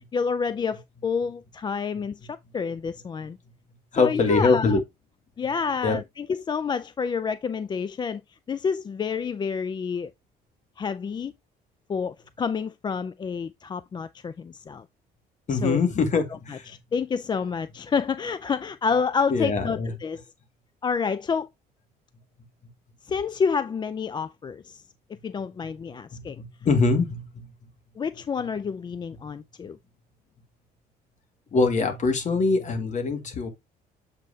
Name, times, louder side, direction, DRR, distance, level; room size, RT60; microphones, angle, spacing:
voice 1, 0.1-3.4 3.9-4.8 5.4-8.2 8.5-10.1 10.8-11.3 11.9-14.8 15.5-15.8 16.5-20.2 20.8-21.5 23.0-24.8 25.2-26.4 28.0-29.8, left 5 dB, 25° left, 0.4 m, -29 dB
voice 2, 3.9-4.8 5.8-6.0 15.5-16.7 19.3-19.9 26.1-27.5 31.5-33.5, left 4 dB, 45° left, 2.0 m, -23 dB
7.4 x 5.5 x 2.7 m
cardioid pair, 110°, 17 cm